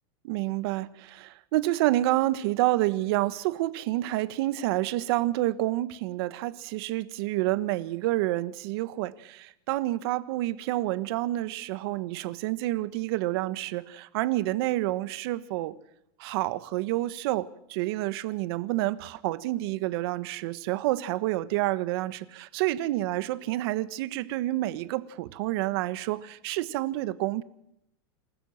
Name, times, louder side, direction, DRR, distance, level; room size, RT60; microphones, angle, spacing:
voice 1, 0.2-15.8 16.2-27.4, right 16 dB, 65° right, 1.4 m, -28 dB
28.0 x 14.0 x 7.3 m
supercardioid pair, 135°, 14 cm